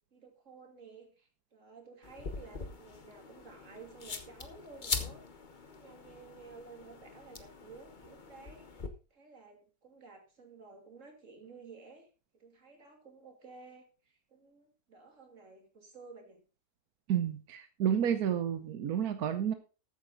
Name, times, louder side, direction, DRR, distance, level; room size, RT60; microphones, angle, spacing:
voice 1, 0.1-5.2 5.7-8.7 9.1-12.1 12.3-16.4, right 4 dB, 55° right, 3 dB, 3.1 m, -53 dB
sound 1, 2.0-8.9, left 4 dB, 35° left, 1.2 m, -42 dB
voice 2, 17.1-19.5, right 9 dB, 75° right, 9 dB, 1.4 m, -30 dB
13.5 x 9.0 x 3.9 m, 0.33 s
omnidirectional pair, 1.6 m